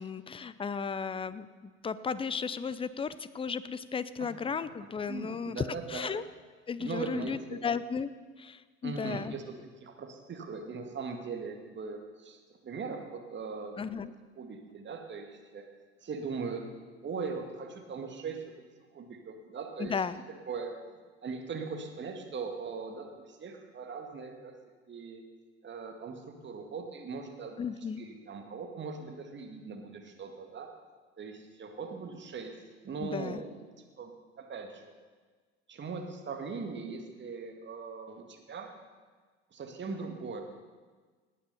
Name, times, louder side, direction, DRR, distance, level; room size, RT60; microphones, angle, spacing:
voice 1, 0.0-1.5 1.8-6.2 6.7-8.1 8.4-9.3 13.8-14.1 19.8-20.2 27.6-28.0 33.0-33.4, left 6 dB, 15° left, 16 dB, 0.6 m, -34 dB
voice 2, 5.1-6.1 6.8-7.6 8.8-9.4 9.8-13.7 14.4-15.6 16.0-16.6 17.0-18.4 18.9-20.0 20.5-20.7 21.2-24.5 24.9-25.2 25.6-27.6 28.0-30.7 31.2-32.5 32.8-33.7 34.0-34.1 34.4-34.9 35.7-38.7 39.5-40.4, right 5 dB, 30° right, 3 dB, 2.1 m, -40 dB
18.0 x 8.7 x 5.6 m, 1.5 s
figure-of-eight pair, 65°, 34 cm